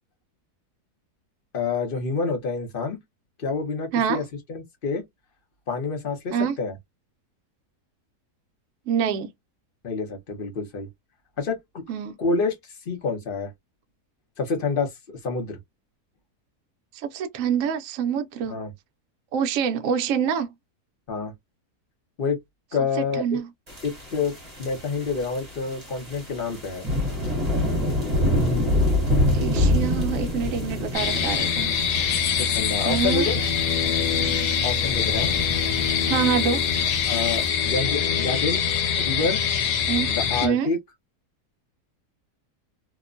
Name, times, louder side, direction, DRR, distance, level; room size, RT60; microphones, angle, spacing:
voice 1, 1.5-3.0 3.4-4.2 4.5-5.0 5.7-6.7 9.8-10.9 11.4-11.8 12.2-12.5 12.9-13.5 14.4-15.6 18.5-18.7 21.1-21.3 22.2-22.4 22.7-23.4 23.8-24.3 24.6-26.9 32.4-33.4 34.6-35.3 37.1-38.6 39.0-39.4 40.1-40.8, left 4 dB, 45° left, 0.7 m, -27 dB
voice 2, 3.9-4.2 6.3-6.6 8.9-9.3 11.9-12.2 16.9-18.6 19.3-20.5 23.0-23.5 29.3-32.2 32.8-33.3 36.1-36.7 39.9-40.1 40.4-40.7, right 8 dB, 65° right, 0.8 m, -26 dB
sound 1, 23.7-37.5, left 1 dB, 25° right, 1.3 m, -27 dB
sound 2, 30.9-40.5, left 7 dB, 80° left, 1.2 m, -24 dB
2.9 x 2.1 x 2.4 m
omnidirectional pair, 1.7 m